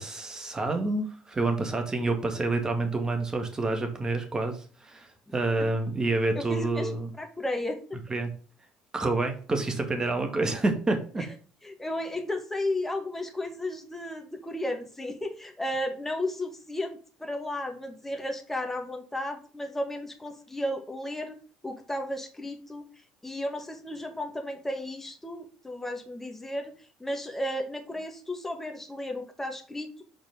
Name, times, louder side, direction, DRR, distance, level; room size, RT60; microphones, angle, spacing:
voice 1, 0.0-7.1 8.1-8.3 8.9-11.2, right 2 dB, 25° right, 5 dB, 1.9 m, -28 dB
voice 2, 5.3-5.7 6.3-8.0 11.2-11.3 11.6-21.4 21.6-22.9 23.2-26.7 27.0-30.0, left 1 dB, 10° left, 4 dB, 1.4 m, -34 dB
5.3 x 4.3 x 5.4 m, 0.40 s
hypercardioid pair, 65°, 3 cm